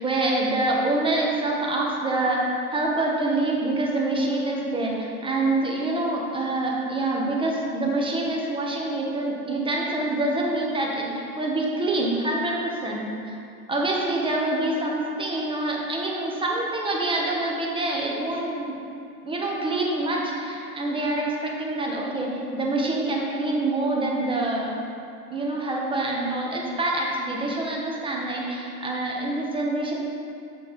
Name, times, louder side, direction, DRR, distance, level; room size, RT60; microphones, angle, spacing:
voice 1, 0.0-13.3 13.7-18.8 19.2-24.7 25.3-30.0, right 2 dB, 10° right, -2 dB, 1.4 m, -26 dB
7.8 x 6.4 x 5.4 m, 2.6 s
hypercardioid pair, 105°, 46 cm